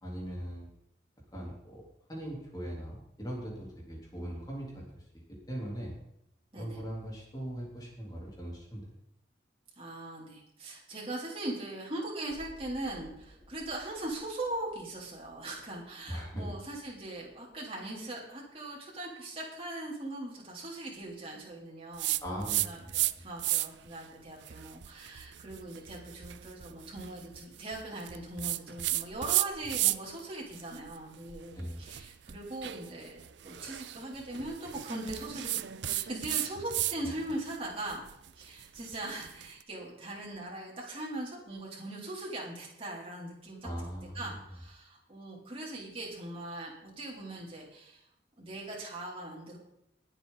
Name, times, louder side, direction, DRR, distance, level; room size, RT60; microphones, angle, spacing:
voice 1, 0.0-0.7 1.3-1.8 2.1-4.8 5.5-5.9 6.5-8.8 16.1-16.5 22.2-23.0 31.5-31.8 37.0-37.1 43.6-44.2, equal, 20° left, -3 dB, 3.8 m, -39 dB
voice 2, 9.8-38.1 38.3-43.7 44.1-48.1 48.4-49.6, right 1 dB, 30° right, -4 dB, 3.7 m, -40 dB
sound 1, 12.3-18.3 18.6-18.7, equal, ahead, 4.4 m, -58 dB
sound 2, 22.0-23.1 23.4-23.9 24.4-30.2 30.5-37.0 37.3-39.5, right 15 dB, 75° right, 0.5 m, -34 dB
21.5 x 8.2 x 4.1 m, 0.78 s
head